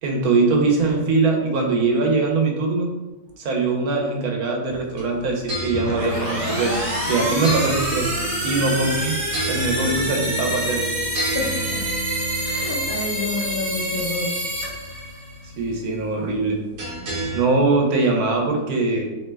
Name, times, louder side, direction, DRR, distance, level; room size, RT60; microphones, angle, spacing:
voice 1, 0.0-2.9 3.4-6.8 7.1-8.1 8.4-9.2 9.5-10.8 15.6-16.6 17.3-19.1, right 3 dB, 80° right, 1 dB, 1.1 m, -21 dB
sound 1, 4.7-17.4, equal, 60° right, 0.9 m, -32 dB
sound 2, 5.7-15.4, right 1 dB, 30° right, 0.6 m, -27 dB
voice 2, 11.3-11.8 12.3-14.4, left 3 dB, 60° left, -9 dB, 0.5 m, -29 dB
2.8 x 2.1 x 3.2 m, 1.1 s
omnidirectional pair, 1.5 m